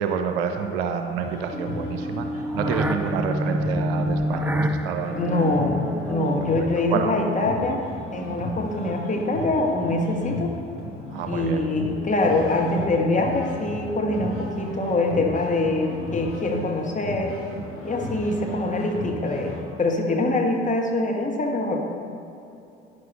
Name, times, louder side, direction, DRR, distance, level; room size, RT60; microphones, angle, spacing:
voice 1, 0.0-5.5 6.9-7.1 11.1-11.6 18.3-18.4, right 6 dB, 65° right, 6 dB, 0.8 m, -28 dB
sound 1, 1.2-19.6, left 1 dB, 40° left, 2.3 m, -36 dB
sound 2, 1.5-7.9, equal, 5° right, 0.4 m, -29 dB
voice 2, 5.1-10.5 11.3-17.4 17.8-21.8, left 2 dB, 25° left, 2 dB, 1.4 m, -24 dB
11.0 x 10.0 x 3.0 m, 2.7 s
figure-of-eight pair, 55°, 32 cm